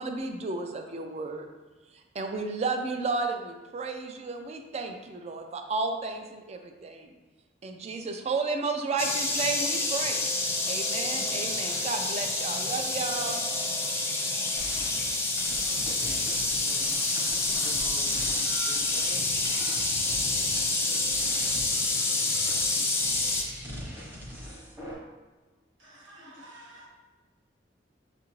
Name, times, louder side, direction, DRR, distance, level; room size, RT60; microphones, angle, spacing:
voice 1, 0.0-1.5 1.9-7.1 7.6-10.3 10.7-13.4, right 3 dB, 35° right, 5 dB, 0.3 m, -32 dB
sound 1, 9.0-23.4, left 2 dB, 15° left, 0.5 m, -28 dB
sound 2, 14.6-24.9, equal, 15° right, 0.8 m, -42 dB
voice 2, 15.5-17.0 17.8-18.4 18.6-20.3, left 2 dB, 85° left, 3 dB, 0.6 m, -49 dB
voice 3, 25.8-26.9, right 1 dB, 85° right, -3 dB, 1.2 m, -50 dB
6.3 x 2.5 x 3.0 m, 1.2 s
head